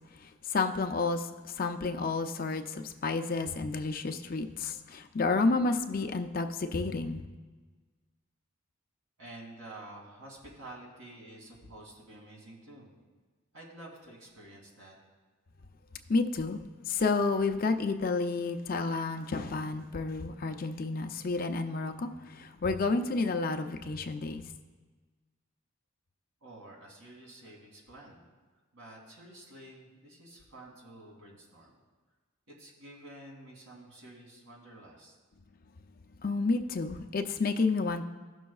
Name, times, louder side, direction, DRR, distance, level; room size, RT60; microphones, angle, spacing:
voice 1, 0.2-7.2 16.1-24.4 36.2-38.1, left 3 dB, 40° left, 6 dB, 0.5 m, -30 dB
voice 2, 9.2-12.9 13.5-14.9 26.4-28.2 28.7-31.8 32.5-35.1, right 1 dB, 85° right, -2 dB, 2.6 m, -50 dB
16.5 x 6.2 x 2.3 m, 1.4 s
head